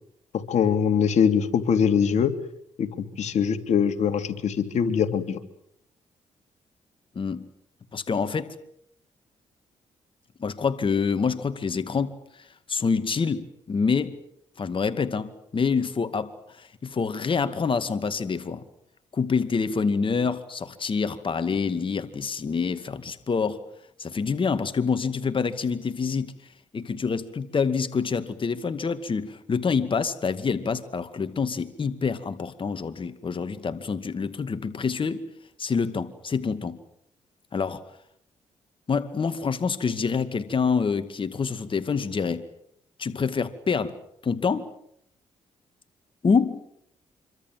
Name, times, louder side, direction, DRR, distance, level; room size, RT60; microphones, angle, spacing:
voice 1, 0.3-2.3 2.8-2.9 3.2-5.4, left 7 dB, 70° left, 8 dB, 2.8 m, -22 dB
voice 2, 7.9-8.5 10.4-12.2 12.7-14.2 14.6-18.6 19.1-23.6 24.0-26.3 26.7-35.2 35.6-36.8 37.5-37.8 38.9-42.4 43.0-43.9 44.2-44.7 46.2-46.6, left 5 dB, 45° left, 11 dB, 2.2 m, -26 dB
26.5 x 24.0 x 7.7 m, 0.72 s
cardioid pair, 65°, 12 cm